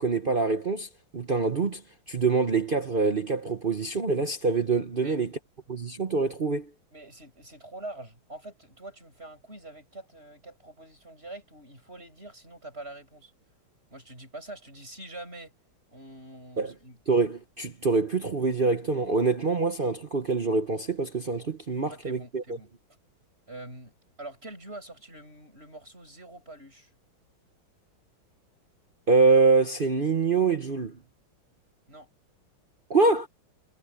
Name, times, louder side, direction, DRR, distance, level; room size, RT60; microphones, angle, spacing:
voice 1, 0.0-1.8 2.1-5.3 5.7-6.7 16.6-16.7 17.1-22.4 29.1-31.0 32.9-33.3, right 4 dB, 45° right, 0.7 m, -25 dB
voice 2, 6.9-13.3 13.9-15.5 15.9-17.0 21.9-22.7 23.5-26.9 31.9-32.1, right 2 dB, 30° right, 8.3 m, -45 dB
omnidirectional pair, 2.3 m